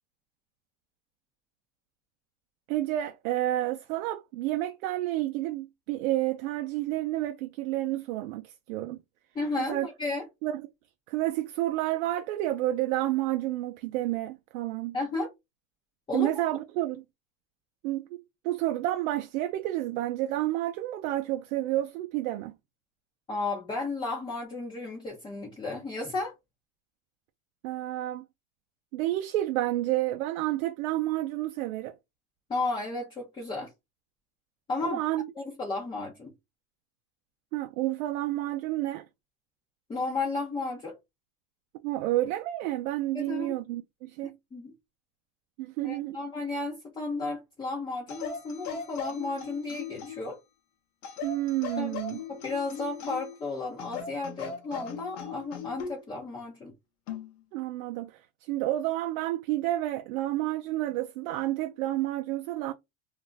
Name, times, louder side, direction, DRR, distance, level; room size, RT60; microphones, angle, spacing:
voice 1, 2.7-9.0 9.6-9.9 10.4-10.7 11.1-15.0 16.1-17.0 17.8-18.2 18.4-22.5 27.6-28.3 28.9-32.0 34.8-35.2 37.5-39.0 41.8-44.4 45.6-46.2 51.2-52.2 57.5-62.7, right 15 dB, 85° right, 0.5 m, -30 dB
voice 2, 9.3-10.3 14.9-15.3 16.1-16.3 23.3-26.3 32.5-33.7 34.7-35.0 35.4-36.3 39.9-41.0 43.1-43.5 44.5-44.7 45.8-50.4 51.8-52.0 52.3-56.8, left 3 dB, 15° left, 0.6 m, -33 dB
sound 1, 48.1-50.3 51.0-53.4 53.8-56.0 57.1-57.3, left 6 dB, 45° left, 0.8 m, -39 dB
2.5 x 2.1 x 3.8 m
supercardioid pair, 145°, 39 cm